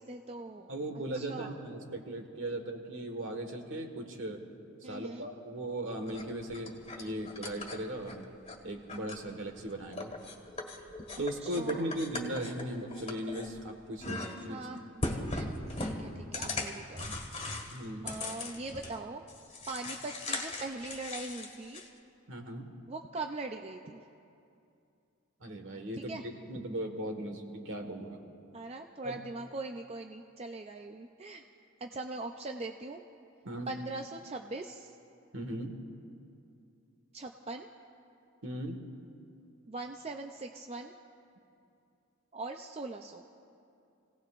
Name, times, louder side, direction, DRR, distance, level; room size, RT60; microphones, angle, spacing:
voice 1, 0.0-0.7 1.1-1.6 4.8-5.3 11.4-12.0 14.5-17.2 18.0-19.2 19.7-21.8 22.9-24.0 25.9-26.3 28.5-31.4 31.8-33.0 33.7-34.9 37.1-37.7 39.7-40.9 42.3-43.2, right 2 dB, 30° right, 4 dB, 0.5 m, -41 dB
voice 2, 0.7-4.4 4.8-8.3 8.6-10.1 11.2-14.6 17.7-18.2 22.3-22.7 25.4-28.3 29.0-29.2 33.5-33.7 35.3-35.8 38.4-38.8, right 1 dB, 60° right, 3 dB, 1.6 m, -38 dB
sound 1, 6.1-8.6 8.9-9.6 9.9-13.7 14.0-14.6 15.0-19.0 19.3-21.9, left 2 dB, 30° left, 1.8 m, -39 dB
29.0 x 17.5 x 2.5 m, 2.6 s
head